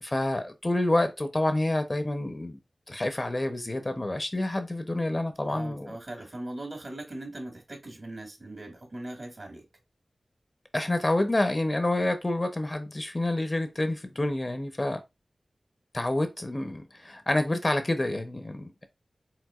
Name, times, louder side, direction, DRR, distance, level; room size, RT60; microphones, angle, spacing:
voice 1, 0.0-2.6 2.9-6.0 10.7-15.0 15.9-18.9, left 1 dB, 35° left, 0.7 m, -28 dB
voice 2, 5.5-9.6, right 1 dB, 55° right, 2.3 m, -40 dB
4.8 x 3.7 x 2.4 m
cardioid pair, 45°, 0 cm